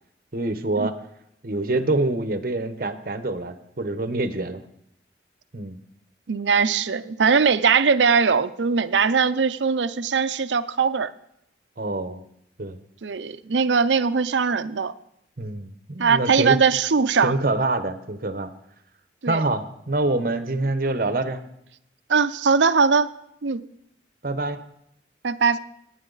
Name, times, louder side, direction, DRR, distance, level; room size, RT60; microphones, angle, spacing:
voice 1, 0.3-0.9 1.4-4.6 5.5-5.8 11.8-12.2 12.6-12.8 15.4-16.6 17.2-18.5 19.3-21.4 24.2-24.6, right 2 dB, 50° right, 11 dB, 0.9 m, -26 dB
voice 2, 6.3-11.1 13.0-14.9 16.0-17.3 19.2-19.4 22.1-23.1 23.4-23.6 25.2-25.6, right 5 dB, 85° right, 13 dB, 0.6 m, -20 dB
18.0 x 9.7 x 4.0 m, 0.76 s
head